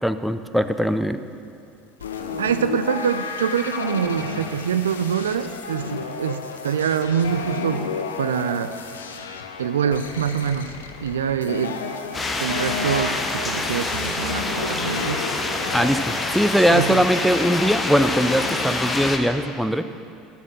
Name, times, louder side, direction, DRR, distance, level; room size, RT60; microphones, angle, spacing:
voice 1, 0.0-1.2 15.7-19.8, equal, ahead, 10 dB, 0.5 m, -21 dB
sound 1, 2.0-17.7, left 5 dB, 80° left, 0.6 m, -33 dB
voice 2, 2.4-7.9 8.2-8.8 9.6-10.7 11.0-11.8 12.4-15.2 16.7-17.0, right 7 dB, 80° right, 11 dB, 0.3 m, -25 dB
sound 2, 12.1-19.2, left 2 dB, 20° left, 0.9 m, -26 dB
12.0 x 4.3 x 7.5 m, 2.5 s
figure-of-eight pair, 70°, 0 cm